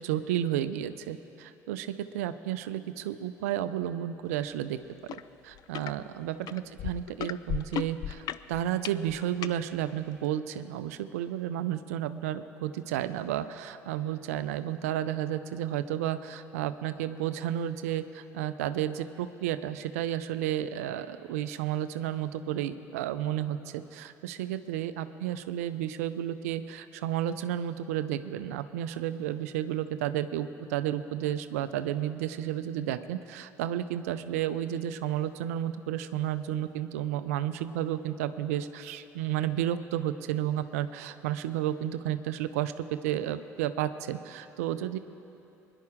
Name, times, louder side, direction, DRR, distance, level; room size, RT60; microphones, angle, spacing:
voice 1, 0.0-4.8 5.4-45.0, right 11 dB, 85° right, 12 dB, 0.5 m, -32 dB
sound 1, 5.1-5.2 5.6-5.9 6.5-9.6 10.3-10.4, left 11 dB, 55° left, 0.4 m, -35 dB
22.0 x 11.0 x 3.6 m, 2.9 s
hypercardioid pair, 60°, 8 cm